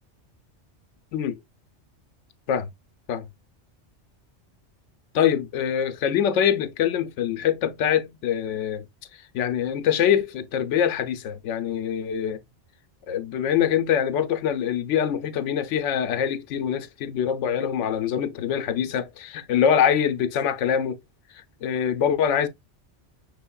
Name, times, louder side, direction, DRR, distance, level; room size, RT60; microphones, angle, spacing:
voice 1, 5.1-8.8 9.3-12.4 13.1-21.0 21.6-22.5, left 8 dB, 90° left, 0.9 m, -24 dB
6.0 x 3.6 x 2.2 m
omnidirectional pair, 1.2 m